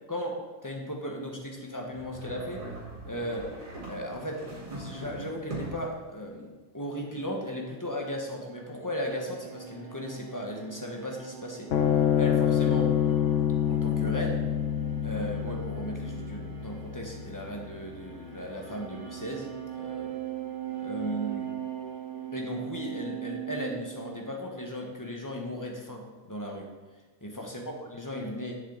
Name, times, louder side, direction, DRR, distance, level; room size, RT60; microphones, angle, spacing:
voice 1, 0.1-2.7 3.1-3.5 3.9-11.7 12.2-12.9 13.6-14.5 15.0-20.1 20.8-21.5 22.3-26.7 27.2-28.6, equal, 15° left, 0 dB, 0.9 m, -36 dB
sound 1, 1.9-6.0, right 1 dB, 65° right, 2.7 m, -41 dB
sound 2, 8.4-24.7, right 10 dB, 40° left, 2.3 m, -41 dB
sound 3, 11.7-18.4, left 9 dB, 60° left, 0.8 m, -27 dB
9.6 x 7.4 x 3.9 m, 1.2 s
omnidirectional pair, 1.9 m